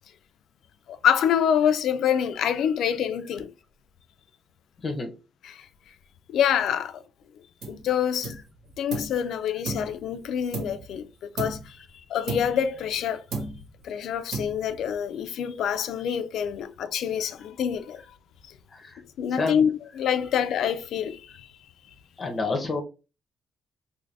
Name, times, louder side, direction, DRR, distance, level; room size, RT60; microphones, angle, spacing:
voice 1, 0.9-3.5 5.5-5.7 6.3-7.0 7.7-8.3 8.8-11.8 12.1-13.2 13.8-18.0 19.2-19.7 20.0-21.5, left 8 dB, 75° left, 0.4 m, -26 dB
voice 2, 4.8-5.1 18.7-19.0 19.3-19.7 22.2-22.8, left 3 dB, 40° left, 0.7 m, -29 dB
sound 1, 7.6-7.9 8.2-9.2 9.6-11.0 11.4-11.8 12.3-13.0 13.3-13.8 14.3-14.9, right 3 dB, 75° right, 1.5 m, -35 dB
3.1 x 2.6 x 3.2 m
cardioid pair, 90°, 0 cm